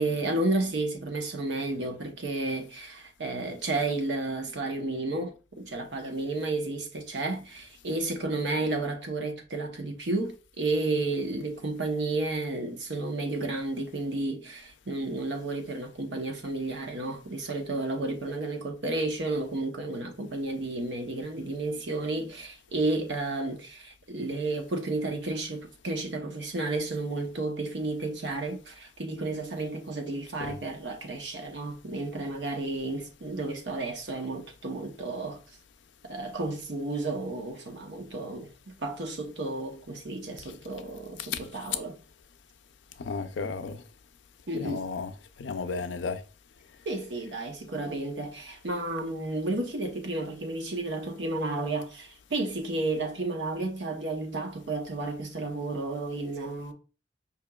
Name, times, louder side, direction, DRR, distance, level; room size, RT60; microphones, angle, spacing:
voice 1, 0.0-35.4 36.0-42.0 44.5-44.9 46.9-56.7, right 2 dB, 75° right, 0.8 m, -32 dB
voice 2, 43.0-43.8 44.5-45.1 45.4-46.2, left 4 dB, 90° left, 0.5 m, -33 dB
5.0 x 2.9 x 2.3 m
head